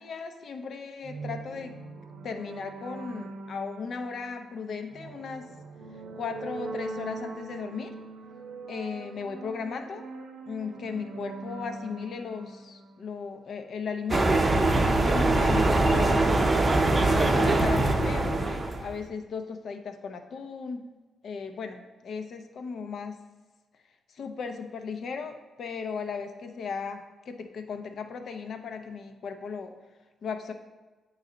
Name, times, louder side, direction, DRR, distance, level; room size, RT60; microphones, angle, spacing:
voice 1, 0.0-1.7 2.2-5.4 6.2-7.9 8.7-10.0 10.5-14.4 14.8-16.5 17.1-20.8 21.2-23.2 24.1-29.7 30.2-30.5, left 5 dB, 60° left, 7 dB, 0.6 m, -36 dB
sound 1, 1.0-13.5, right 3 dB, 80° right, 0.7 m, -42 dB
sound 2, 14.1-18.9, right 2 dB, 25° right, 0.6 m, -23 dB
8.9 x 3.2 x 3.8 m, 1.2 s
cardioid pair, 105°, 0 cm